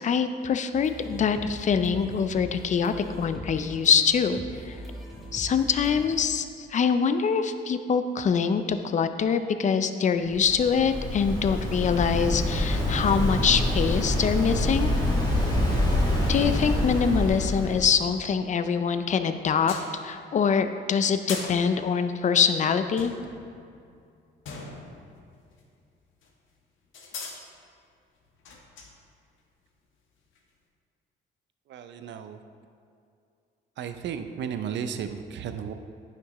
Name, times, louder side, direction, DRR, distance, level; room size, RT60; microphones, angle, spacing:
voice 1, 0.0-4.4 4.7-4.8 5.3-14.9 16.3-19.7 20.0-23.1, left 6 dB, 40° left, 9 dB, 0.4 m, -24 dB
sound 1, 0.7-6.2, equal, ahead, 1.3 m, -41 dB
Waves surf, 10.3-17.9, left 1 dB, 20° left, 1.7 m, -26 dB
sound 2, 18.6-19.2 19.7-20.4 21.3-22.3 23.0-25.8 26.2-26.3 26.9-27.4 28.2-29.0 30.4-30.5, left 4 dB, 75° left, 1.1 m, -41 dB
voice 2, 31.7-32.4 33.8-35.7, right 8 dB, 65° right, 8 dB, 0.5 m, -34 dB
9.7 x 5.9 x 3.1 m, 2.4 s
cardioid pair, 90°, 20 cm